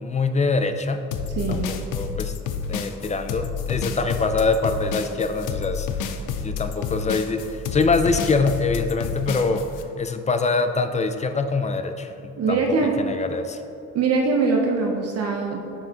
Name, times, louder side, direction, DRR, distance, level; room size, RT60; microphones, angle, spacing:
voice 1, 0.0-1.1 1.5-2.3 2.7-6.1 6.4-9.7 10.0-12.6 13.0-13.6, left 4 dB, 25° left, 8 dB, 0.4 m, -24 dB
sound 1, 1.1-9.8, left 7 dB, 85° left, 0.5 m, -29 dB
voice 2, 1.4-1.7 12.4-13.0 13.9-15.6, right 4 dB, 55° right, 1 dB, 0.7 m, -22 dB
7.0 x 5.8 x 2.9 m, 2.8 s
cardioid pair, 90°, 30 cm